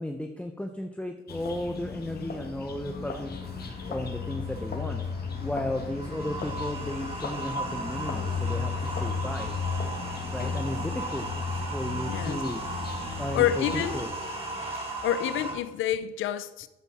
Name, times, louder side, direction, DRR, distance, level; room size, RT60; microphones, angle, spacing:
voice 1, 0.0-3.4 3.9-5.0 5.4-9.5 10.3-12.6 13.2-14.1, left 1 dB, 5° left, 0.9 m, -34 dB
sound 1, 1.3-14.0, left 5 dB, 50° left, 1.8 m, -35 dB
sound 2, 2.7-15.5, right 2 dB, 30° right, 3.5 m, -37 dB
voice 2, 12.1-12.4 13.3-14.0 14.8-16.7, left 11 dB, 85° left, 0.7 m, -28 dB
11.0 x 8.0 x 4.4 m
cardioid pair, 90°, 20 cm